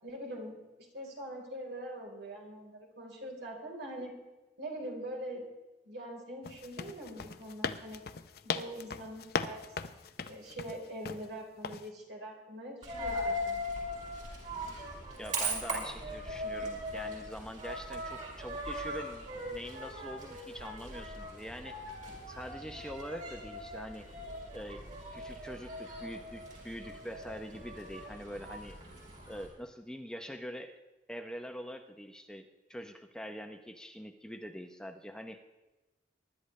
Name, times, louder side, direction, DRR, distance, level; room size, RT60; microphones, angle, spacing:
voice 1, 0.0-0.6 0.9-4.2 4.6-5.4 5.8-8.0 8.4-9.6 10.3-13.6, right 1 dB, 75° right, -1 dB, 4.0 m, -43 dB
sound 1, 6.4-11.3 11.6-11.9, left 5 dB, 60° left, 0.7 m, -38 dB
Coin (dropping), 12.8-29.5, equal, 45° right, 5.4 m, -40 dB
voice 2, 15.2-21.8 22.3-24.1 24.5-24.8 25.1-28.8 29.3-30.8 31.1-35.4, equal, 5° left, 5 dB, 0.7 m, -44 dB
24.0 x 11.5 x 3.2 m, 1.1 s
head